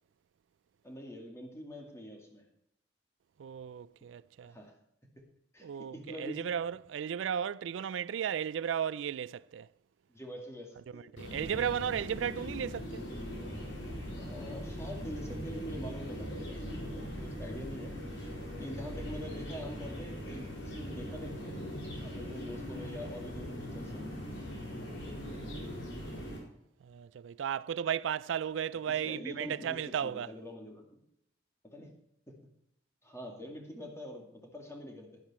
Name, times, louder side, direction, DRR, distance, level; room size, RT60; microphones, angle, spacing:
voice 1, 0.8-2.4 4.4-4.7 5.2-5.3 5.5-6.5 10.1-11.1 14.2-18.0 18.6-21.6 22.0-24.1 28.9-31.0 31.6-31.9 32.3-32.4 33.0-35.2, equal, 15° left, 2.2 m, -45 dB
voice 2, 3.4-4.5 5.6-9.7 10.9-13.0 25.1-25.7 26.8-30.3, right 8 dB, 85° right, 0.3 m, -35 dB
sound 1, 11.2-26.4, equal, 75° left, 4.2 m, -40 dB
11.0 x 11.0 x 4.3 m
head